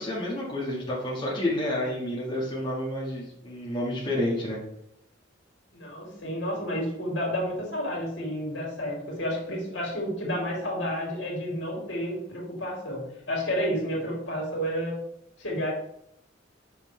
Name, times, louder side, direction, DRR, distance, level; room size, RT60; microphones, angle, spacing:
voice 1, 0.0-4.6, left 1 dB, 25° left, -5 dB, 1.6 m, -29 dB
voice 2, 5.7-15.0 15.4-15.7, equal, 70° left, -2 dB, 2.7 m, -30 dB
6.5 x 5.6 x 3.2 m, 0.75 s
head